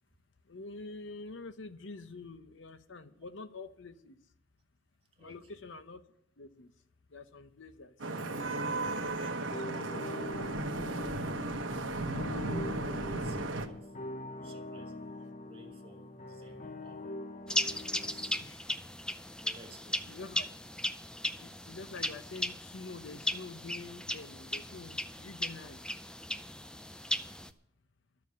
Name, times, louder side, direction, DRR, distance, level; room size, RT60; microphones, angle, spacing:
voice 1, 0.5-4.2 5.2-6.0 6.4-6.7 7.1-10.0 10.8-11.9 18.4-18.7 20.1-20.5 21.4-25.8, left 3 dB, 75° left, 11 dB, 0.8 m, -47 dB
voice 2, 5.2-5.6 12.7-13.9 14.4-15.1 15.4-17.1 18.0-18.4 19.3-20.6, right 2 dB, 30° right, 2 dB, 2.0 m, -55 dB
Vehicle horn car horn honking / Traffic noise roadway noise, 8.0-13.7, right 2 dB, 90° right, 1.1 m, -35 dB
sound 1, 9.5-18.4, left 2 dB, 40° left, 1.0 m, -43 dB
sound 2, 17.5-27.5, left 1 dB, 5° left, 0.4 m, -37 dB
11.5 x 6.9 x 9.4 m, 0.77 s
head